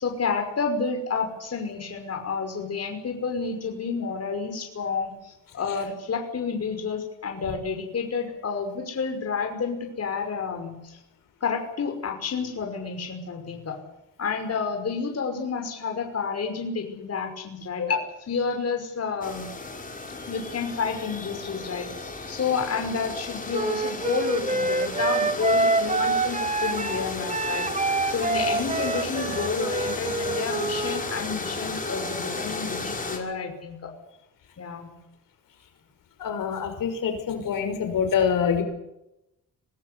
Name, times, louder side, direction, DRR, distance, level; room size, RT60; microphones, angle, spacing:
voice 1, 0.0-11.0 11.4-13.8 14.2-19.5 20.3-33.9 34.6-34.9, left 5 dB, 50° left, 3 dB, 5.7 m, -30 dB
sound 1, 19.2-33.2, left 3 dB, 25° left, 6.1 m, -34 dB
Wind instrument woodwind instrument, 23.5-31.0, right 3 dB, 20° right, 1.6 m, -26 dB
voice 2, 36.2-38.6, left 7 dB, 80° left, 5 dB, 6.1 m, -25 dB
25.5 x 19.0 x 8.5 m, 0.88 s
cardioid pair, 110°, 33 cm